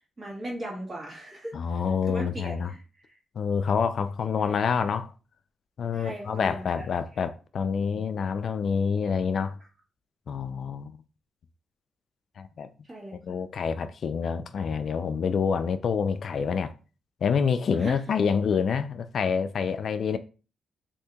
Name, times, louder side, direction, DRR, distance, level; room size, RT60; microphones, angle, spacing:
voice 1, 0.0-1.8 2.1-3.1 5.9-6.9 7.1-7.2 12.8-13.4 17.7-18.0, right 1 dB, 35° right, 1.5 m, -39 dB
voice 2, 1.5-2.7 3.4-5.1 5.8-9.6 10.3-11.0 12.4-12.7 13.1-16.7 17.2-20.2, left 6 dB, 60° left, 0.3 m, -27 dB
2.7 x 2.7 x 3.5 m
cardioid pair, 100°, 0 cm